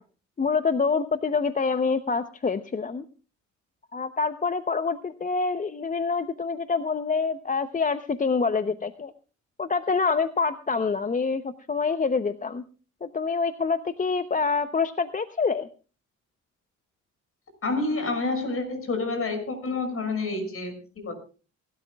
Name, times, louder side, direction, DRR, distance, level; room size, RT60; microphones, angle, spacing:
voice 1, 0.4-3.0 3.9-9.1 9.6-12.6 13.0-15.7, left 4 dB, 25° left, 10 dB, 0.8 m, -26 dB
voice 2, 17.6-21.1, left 3 dB, 50° left, 6 dB, 6.2 m, -28 dB
26.5 x 13.0 x 2.3 m, 0.36 s
cardioid pair, 90°, 30 cm